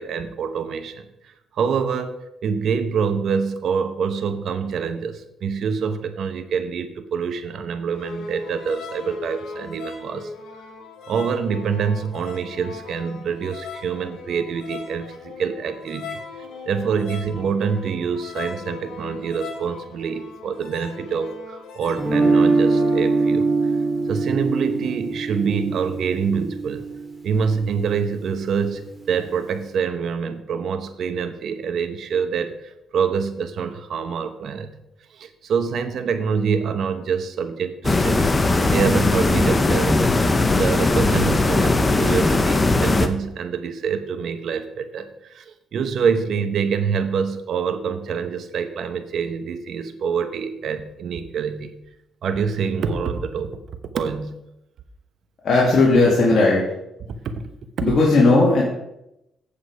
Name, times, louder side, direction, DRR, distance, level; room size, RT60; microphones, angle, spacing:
voice 1, 0.0-10.3 11.1-16.2 16.7-23.5 24.1-26.8 27.2-34.7 35.1-38.3 38.7-51.7 52.2-53.6 53.9-54.3 57.1-57.5 57.8-57.9, right 6 dB, 65° right, 10 dB, 1.0 m, -26 dB
sound 1, 7.9-23.3, left 4 dB, 80° left, 1.8 m, -38 dB
Guitar, 22.0-28.0, right 3 dB, 20° right, 2.4 m, -22 dB
sound 2, 37.8-43.1, left 2 dB, 25° left, 0.8 m, -19 dB
voice 2, 55.4-56.6 57.8-58.6, left 2 dB, 50° left, -5 dB, 2.4 m, -16 dB
8.5 x 7.3 x 4.8 m, 0.85 s
cardioid pair, 90°, 0 cm